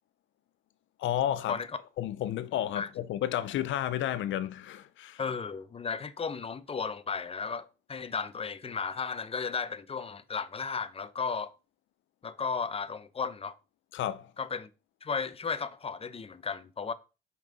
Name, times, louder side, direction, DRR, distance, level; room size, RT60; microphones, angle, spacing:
voice 1, 1.0-1.6 2.0-5.2 13.9-14.3, left 11 dB, 75° left, 0.5 m, -31 dB
voice 2, 5.2-11.5 12.2-13.6 14.4-14.7 15.0-16.9, left 5 dB, 30° left, 0.7 m, -34 dB
5.7 x 5.3 x 3.9 m
cardioid pair, 90°, 20 cm